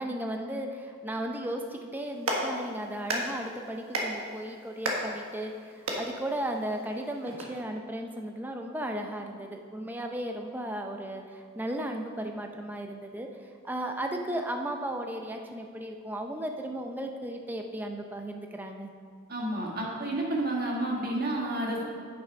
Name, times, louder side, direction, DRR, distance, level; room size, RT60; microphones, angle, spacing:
voice 1, 0.0-13.3 13.6-18.9, right 1 dB, 10° right, 3 dB, 0.6 m, -35 dB
Clapping, 2.0-7.4, right 1 dB, 90° right, 1.5 m, -35 dB
voice 2, 19.3-21.9, right 1 dB, 45° right, -2 dB, 1.7 m, -30 dB
9.0 x 6.9 x 5.2 m, 2.1 s
head